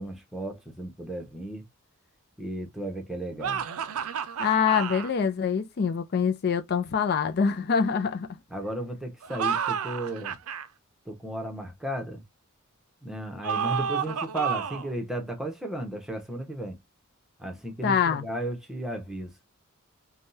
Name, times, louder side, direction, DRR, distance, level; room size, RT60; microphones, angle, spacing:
voice 1, 0.0-1.6 2.4-3.6 8.5-10.4 11.1-12.2 13.0-16.8 17.4-19.3, right 1 dB, ahead, 1.0 m, -34 dB
sound 1, 3.4-5.1 9.2-10.7 13.4-14.9, right 7 dB, 80° right, 0.5 m, -30 dB
voice 2, 4.4-8.3 17.8-18.2, left 6 dB, 50° left, 0.4 m, -25 dB
3.5 x 2.3 x 2.6 m
head